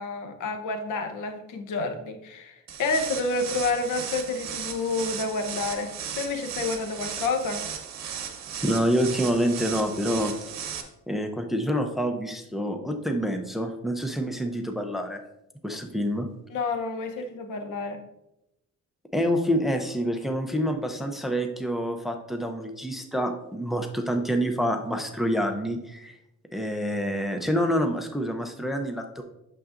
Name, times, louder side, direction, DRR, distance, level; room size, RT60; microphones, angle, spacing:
voice 1, 0.0-7.6 16.5-18.0, left 3 dB, 90° left, 6 dB, 1.0 m, -29 dB
sound 1, 2.7-10.8, right 8 dB, 60° right, 1.0 m, -36 dB
voice 2, 8.6-10.3 11.1-15.2 15.6-16.3 19.1-26.1 26.5-29.2, equal, ahead, 4 dB, 0.5 m, -27 dB
8.5 x 6.6 x 2.5 m, 0.87 s
cardioid pair, 155°, 30 cm